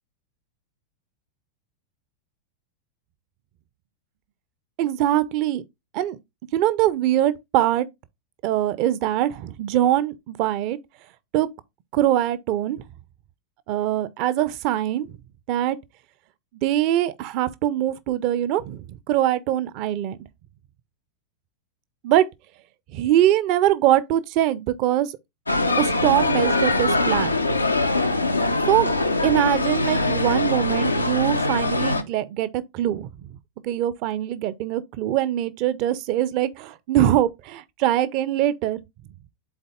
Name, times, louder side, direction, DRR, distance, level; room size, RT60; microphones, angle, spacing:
voice 1, 4.8-5.6 5.9-6.2 6.5-7.9 8.4-10.8 11.3-11.5 11.9-12.8 13.7-15.2 15.5-15.8 16.6-20.2 22.0-22.3 22.9-25.1 25.8-27.4 28.7-28.9 29.2-33.1 33.6-38.8, right 12 dB, 45° right, 0.6 m, -22 dB
sound 1, 25.5-32.0, left 2 dB, 85° left, 0.6 m, -22 dB
11.5 x 4.1 x 2.3 m
figure-of-eight pair, 90°, 0 cm